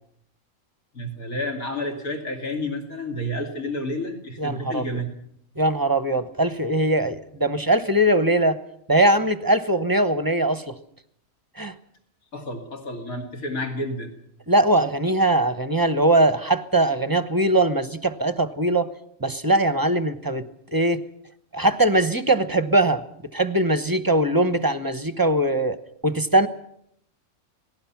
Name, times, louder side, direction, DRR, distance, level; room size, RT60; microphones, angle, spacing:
voice 1, 0.9-5.1 12.3-14.1, left 1 dB, 70° left, 3 dB, 3.0 m, -30 dB
voice 2, 4.4-5.0 5.6-8.6 8.9-10.8 11.6-11.7 14.5-18.9 19.2-20.4 20.7-21.0 21.5-23.0 23.3-25.8 26.0-26.5, right 1 dB, 20° right, 11 dB, 0.8 m, -21 dB
27.0 x 19.0 x 5.9 m, 0.71 s
omnidirectional pair, 1.5 m